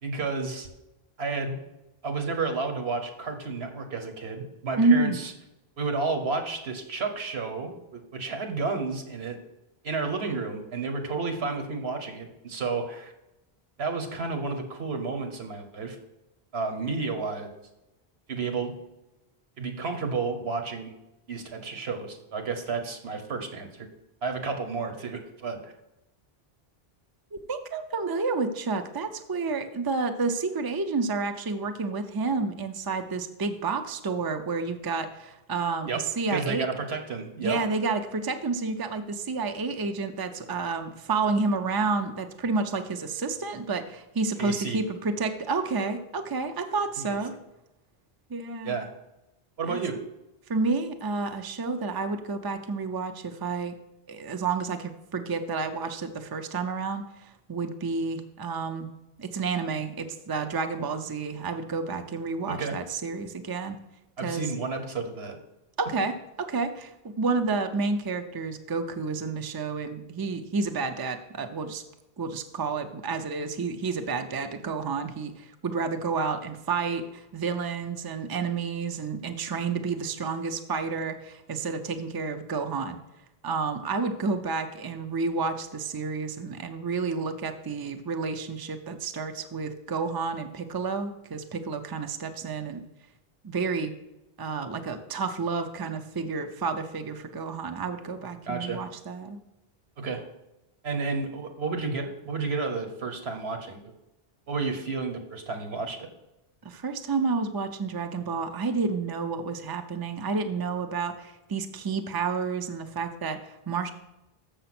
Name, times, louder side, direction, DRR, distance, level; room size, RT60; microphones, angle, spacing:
voice 1, 0.0-0.7 1.2-1.6 2.0-5.3 5.8-9.4 9.8-13.1 13.8-16.0 16.5-17.5 18.3-18.8 19.6-20.9 21.3-23.9 24.2-25.7 35.9-36.0 36.3-37.6 44.4-44.8 47.0-47.2 48.6-48.9 49.6-50.0 62.5-62.8 64.2-65.4 98.5-98.8 100.0-100.2 100.8-103.8 104.5-106.1, right 4 dB, 85° right, 5 dB, 1.4 m, -31 dB
voice 2, 4.8-5.2 27.3-36.7 37.4-47.4 48.3-48.8 49.7-49.8 50.5-53.8 54.1-58.9 59.2-63.8 64.2-64.4 65.8-66.9 67.2-71.8 72.2-83.0 83.4-92.8 93.4-93.9 94.4-99.4 106.6-113.9, right 4 dB, 30° right, 7 dB, 0.5 m, -30 dB
6.8 x 6.6 x 6.0 m, 0.93 s
omnidirectional pair, 1.0 m